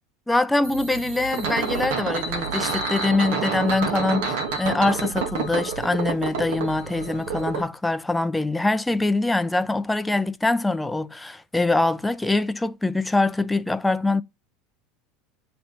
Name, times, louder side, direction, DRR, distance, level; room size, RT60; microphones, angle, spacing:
voice 1, 0.3-14.2, left 2 dB, 5° left, 0.5 m, -23 dB
sound 1, 0.6-7.6, right 5 dB, 75° right, 1.8 m, -28 dB
10.0 x 3.4 x 4.0 m
supercardioid pair, 110°, 0 cm